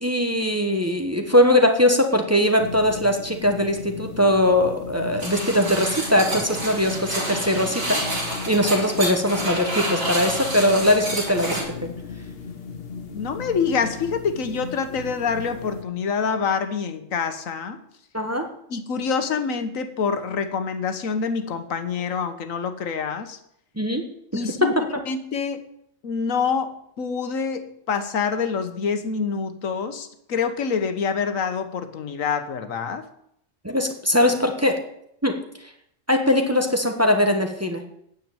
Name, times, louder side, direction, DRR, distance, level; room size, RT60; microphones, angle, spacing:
voice 1, 0.0-11.9 18.1-18.5 23.8-24.0 24.6-24.7 33.6-34.8 35.2-35.3 36.1-37.8, left 1 dB, 10° right, 4 dB, 1.1 m, -21 dB
sound 1, 2.6-15.8, left 5 dB, 50° left, 1.1 m, -37 dB
sound 2, 5.2-11.6, right 1 dB, 90° right, 4.4 m, -29 dB
voice 2, 13.1-17.8 18.7-23.4 24.3-24.7 25.1-25.6 26.0-33.1, left 5 dB, 90° left, 9 dB, 1.5 m, -26 dB
9.1 x 7.4 x 8.9 m, 0.74 s
omnidirectional pair, 1.3 m